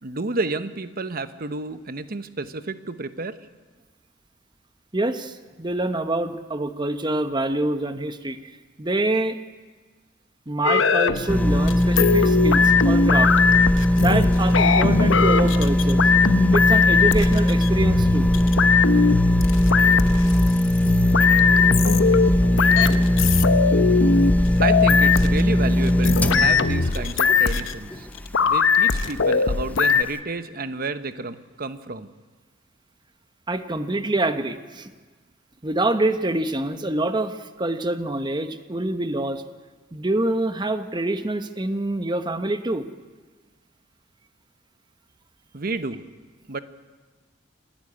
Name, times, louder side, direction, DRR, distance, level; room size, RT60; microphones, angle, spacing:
voice 1, 0.0-3.4 24.6-28.1 28.5-32.1 45.5-46.0 46.5-46.6, right 3 dB, 50° right, 11 dB, 1.0 m, -30 dB
voice 2, 4.9-8.5 8.8-9.4 10.5-13.3 14.0-16.0 16.5-18.3 33.5-34.9 35.6-39.4 39.9-42.8, right 2 dB, 25° right, 9 dB, 1.1 m, -26 dB
sound 1, 10.6-30.0, left 5 dB, 75° left, 0.9 m, -20 dB
sound 2, 11.3-28.5 29.0-29.1, left 1 dB, 10° left, 0.6 m, -20 dB
27.0 x 12.0 x 9.7 m, 1.4 s
head